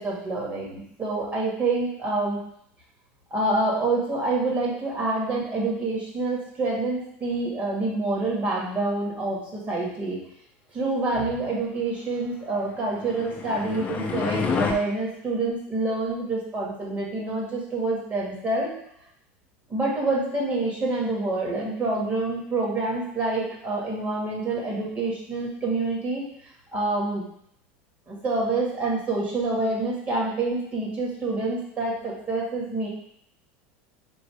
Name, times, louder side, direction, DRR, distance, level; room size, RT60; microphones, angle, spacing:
voice 1, 0.0-2.4 3.3-10.2 10.7-18.7 19.7-26.2 26.7-27.2 28.1-32.9, right 2 dB, 25° right, -4 dB, 1.7 m, -27 dB
sound 1, 12.8-14.7, left 5 dB, 25° left, 0.6 m, -28 dB
3.8 x 2.6 x 4.7 m, 0.69 s
supercardioid pair, 125°, 6 cm